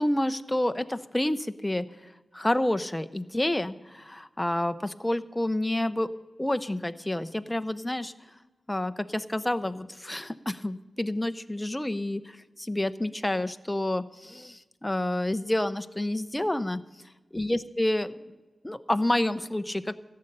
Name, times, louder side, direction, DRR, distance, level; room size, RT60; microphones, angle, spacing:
voice 1, 0.0-1.9 2.3-6.1 6.4-8.1 8.7-16.8 17.3-18.2 18.6-20.0, left 1 dB, 15° left, 10 dB, 0.6 m, -29 dB
14.5 x 6.6 x 9.8 m, 1.2 s
cardioid pair, 65°, 0 cm